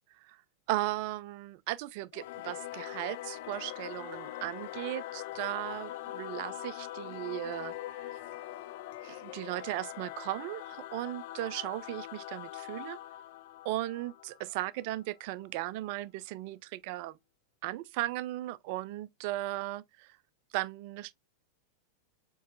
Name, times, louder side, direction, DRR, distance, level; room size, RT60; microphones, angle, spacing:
voice 1, 0.7-8.2 9.0-13.0 13.6-17.2 17.6-20.2 20.5-21.1, right 16 dB, 45° right, 0.3 m, -37 dB
Singing / Musical instrument, 2.1-15.0, left 14 dB, 50° left, 0.3 m, -43 dB
7.0 x 3.0 x 2.5 m
figure-of-eight pair, 90°, 0 cm